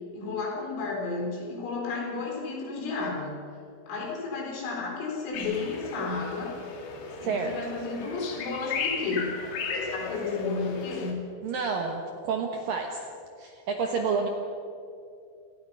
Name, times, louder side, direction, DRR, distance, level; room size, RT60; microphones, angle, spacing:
voice 1, 0.1-3.4 3.9-6.5 7.2-9.4 9.7-11.2, left 4 dB, 80° left, -1 dB, 6.8 m, -32 dB
sound 1, 5.3-11.1, left 5 dB, 60° left, 4.1 m, -36 dB
voice 2, 7.2-7.6 11.4-13.0 13.4-14.3, right 5 dB, 70° right, 3 dB, 2.2 m, -29 dB
28.5 x 18.0 x 5.6 m, 2.5 s
omnidirectional pair, 5.8 m